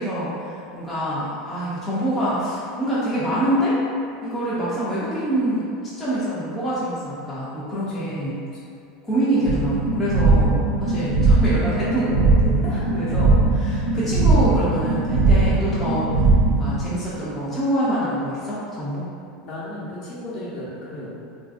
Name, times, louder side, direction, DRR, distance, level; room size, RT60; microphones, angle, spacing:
voice 1, 0.0-3.8 4.2-5.6 6.0-8.4 9.0-19.1, right 1 dB, 5° left, -12 dB, 0.5 m, -25 dB
voice 2, 7.7-8.3 8.7-8.8 12.6-12.8 19.4-21.1, left 1 dB, 40° left, -7 dB, 0.8 m, -35 dB
sound 1, 9.4-16.8, right 3 dB, 55° right, 0.4 m, -19 dB
3.9 x 2.6 x 2.4 m, 2.4 s
supercardioid pair, 175°, 2 cm